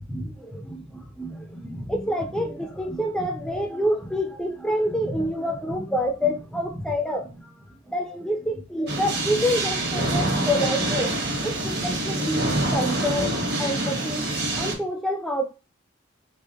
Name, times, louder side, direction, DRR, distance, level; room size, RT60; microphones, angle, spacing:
voice 1, 0.1-11.1 11.4-14.2 14.6-15.4, equal, 5° left, 0.3 m, -27 dB
sound 1, 8.9-14.7, right 1 dB, 55° right, 1.0 m, -26 dB
3.5 x 2.8 x 2.7 m
head